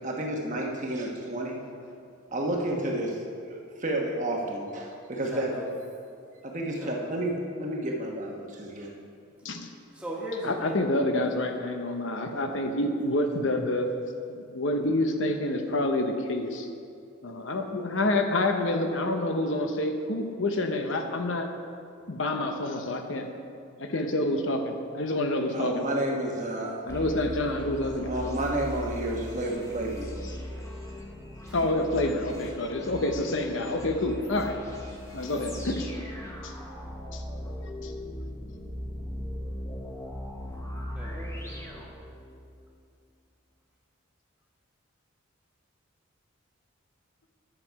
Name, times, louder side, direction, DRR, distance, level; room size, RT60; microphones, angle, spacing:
voice 1, 0.0-1.6 2.3-5.5 6.4-8.9 25.5-26.7 28.0-30.1, right 1 dB, 35° right, -1 dB, 1.2 m, -31 dB
voice 2, 5.2-5.6 6.8-7.3 9.9-10.8 31.4-31.6 40.9-41.9, equal, 5° right, -5 dB, 1.6 m, -39 dB
voice 3, 10.4-13.9 14.3-16.7 17.2-21.5 22.1-23.3 23.8-25.7 26.9-28.1 31.5-34.6 35.1-35.9 36.4-36.5 37.1-37.2 37.8-37.9, left 1 dB, 60° left, 5 dB, 0.8 m, -28 dB
sound 1, 26.9-42.5, left 1 dB, 15° left, 1.0 m, -39 dB
10.5 x 7.4 x 4.7 m, 2.4 s
head